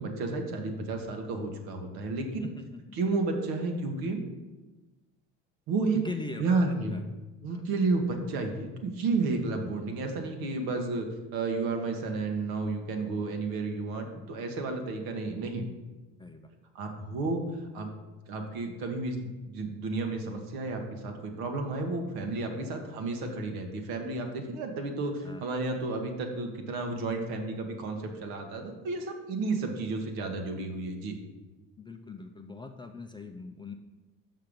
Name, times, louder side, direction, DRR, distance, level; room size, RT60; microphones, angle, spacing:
voice 1, 0.0-2.5 2.9-4.2 5.7-6.0 6.4-7.1 7.4-11.1 11.3-15.6 16.7-17.4 17.7-17.9 18.3-31.2, right 3 dB, 70° right, 4 dB, 1.3 m, -32 dB
voice 2, 2.4-2.8 6.0-6.6 6.9-7.0 7.5-7.6 10.0-10.1 16.2-16.5 25.2-25.5 31.8-33.7, left 3 dB, 15° left, 4 dB, 0.4 m, -41 dB
5.8 x 5.6 x 5.1 m, 1.2 s
supercardioid pair, 90°, 38 cm